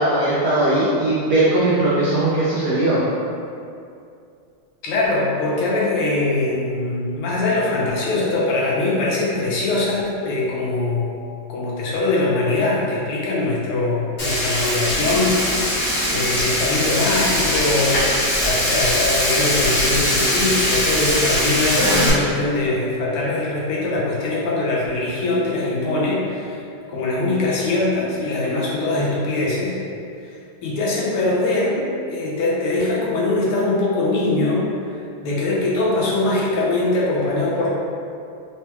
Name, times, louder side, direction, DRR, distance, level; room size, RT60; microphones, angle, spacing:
voice 1, 0.0-3.0, right 2 dB, 80° right, -9 dB, 0.9 m, -19 dB
voice 2, 4.8-11.2 11.5-15.8 16.1-26.6 26.9-29.8 30.6-31.9 32.1-34.7 35.2-37.7, left 2 dB, 85° left, -5 dB, 1.7 m, -22 dB
Frying (food), 14.2-22.1, left 1 dB, 55° left, 0.6 m, -21 dB
4.1 x 2.2 x 2.9 m, 2.5 s
omnidirectional pair, 2.4 m